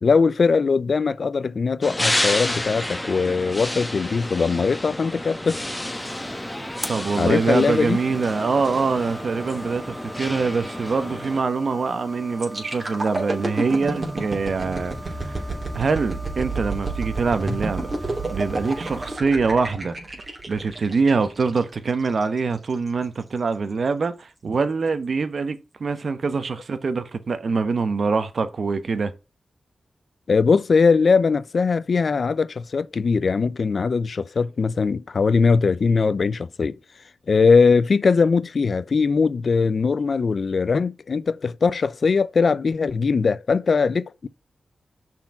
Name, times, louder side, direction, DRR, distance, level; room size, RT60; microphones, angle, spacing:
voice 1, 0.0-5.6 7.2-8.0 30.3-36.8 37.3-44.3, left 5 dB, 60° left, 0.5 m, -20 dB
sound 1, 1.8-11.4, left 1 dB, 15° left, 1.2 m, -30 dB
sound 2, 5.6-19.1, right 1 dB, 15° right, 1.0 m, -40 dB
voice 2, 6.9-15.5 15.7-17.9 18.3-19.9 20.5-29.1, right 4 dB, 60° right, 0.9 m, -24 dB
sound 3, 12.4-22.2 22.7-22.9, right 2 dB, 35° right, 2.8 m, -30 dB
5.9 x 4.5 x 5.8 m
cardioid pair, 70°, 0 cm